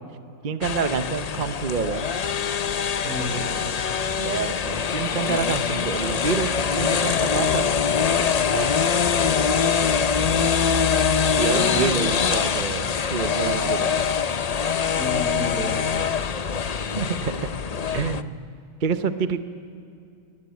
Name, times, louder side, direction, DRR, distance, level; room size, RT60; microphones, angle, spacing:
voice 1, 0.4-2.1 4.2-7.7 8.5-9.4 11.4-13.9 17.0-17.5 17.9-18.4 18.8-19.4, right 6 dB, 40° right, 10 dB, 0.8 m, -28 dB
sound 1, 0.6-18.2, left 6 dB, 60° left, 0.4 m, -23 dB
voice 2, 3.0-3.5 11.5-12.1 13.5-14.0 14.9-15.9, equal, 80° right, 0 dB, 6.2 m, -31 dB
21.0 x 19.5 x 8.4 m, 2.6 s
omnidirectional pair, 1.6 m